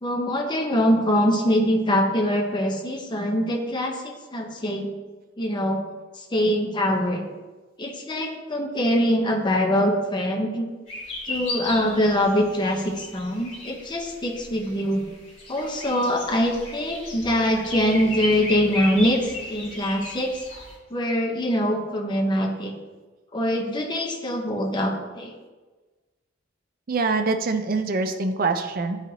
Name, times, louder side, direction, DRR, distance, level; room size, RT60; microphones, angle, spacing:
voice 1, 0.0-4.9 5.4-5.8 6.2-7.2 7.8-10.7 11.3-15.0 15.5-20.4 20.9-22.7 23.3-25.4, equal, 25° left, 2 dB, 0.6 m, -23 dB
sound 1, 10.9-20.8, left 2 dB, 75° left, 1.9 m, -35 dB
sound 2, 17.1-20.2, equal, ahead, 1.8 m, -46 dB
voice 2, 26.9-29.0, right 3 dB, 45° right, 6 dB, 0.5 m, -24 dB
9.0 x 4.0 x 2.8 m, 1.3 s
head